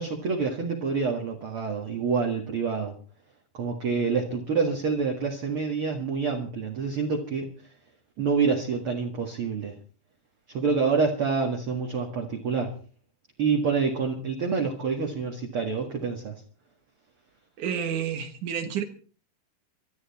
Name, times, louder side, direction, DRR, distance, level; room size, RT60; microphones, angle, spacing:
voice 1, 0.0-3.0 3.5-7.5 8.2-9.7 10.5-12.7 13.4-16.3, right 5 dB, 45° right, 1 dB, 2.1 m, -27 dB
voice 2, 17.6-18.8, right 8 dB, 60° right, 8 dB, 2.6 m, -30 dB
22.5 x 12.5 x 4.3 m, 0.40 s
omnidirectional pair, 4.4 m